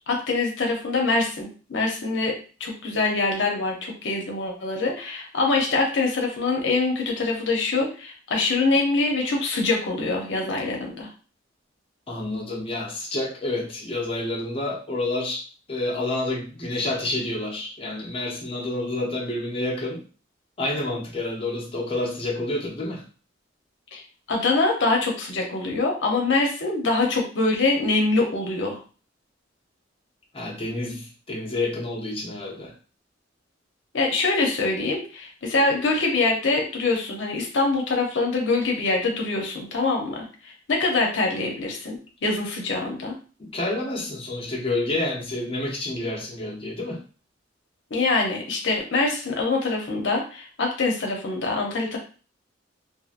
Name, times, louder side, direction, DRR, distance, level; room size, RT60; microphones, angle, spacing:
voice 1, 0.1-11.1 23.9-24.0 24.3-28.8 33.9-42.0 42.2-43.1 47.9-52.0, left 3 dB, 75° left, 1 dB, 0.7 m, -24 dB
voice 2, 12.1-15.4 15.7-20.0 20.6-23.0 30.3-32.7 43.4-47.0, left 2 dB, 30° left, -4 dB, 0.7 m, -29 dB
2.8 x 2.6 x 2.4 m, 0.37 s
head